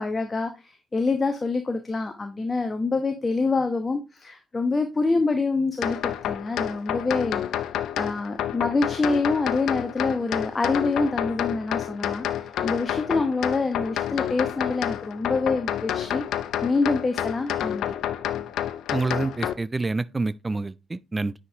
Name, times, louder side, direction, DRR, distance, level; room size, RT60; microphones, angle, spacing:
voice 1, 0.0-7.4 8.0-16.2 16.6-18.0, left 3 dB, 30° left, 0.9 m, -26 dB
sound 1, 5.8-19.5, left 11 dB, 65° left, 0.5 m, -29 dB
voice 2, 18.9-21.3, right 3 dB, 25° right, 0.4 m, -27 dB
9.5 x 5.2 x 2.7 m
figure-of-eight pair, 45°, 0 cm